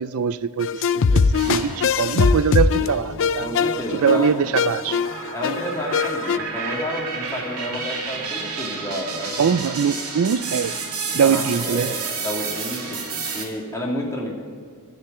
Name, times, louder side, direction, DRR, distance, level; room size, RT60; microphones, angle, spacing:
voice 1, 0.0-3.5 4.0-5.0 9.4-10.9 11.1-11.9, right 7 dB, 65° right, 15 dB, 0.4 m, -22 dB
sound 1, 0.6-6.4, left 5 dB, 60° left, 0.4 m, -21 dB
sound 2, 1.4-2.2 2.7-13.4, right 4 dB, 90° right, 2.5 m, -31 dB
voice 2, 1.5-1.9 3.4-4.3 5.3-9.4 11.1-13.0 13.3-14.4, equal, 15° left, -3 dB, 2.6 m, -30 dB
13.0 x 6.7 x 8.9 m, 2.1 s
head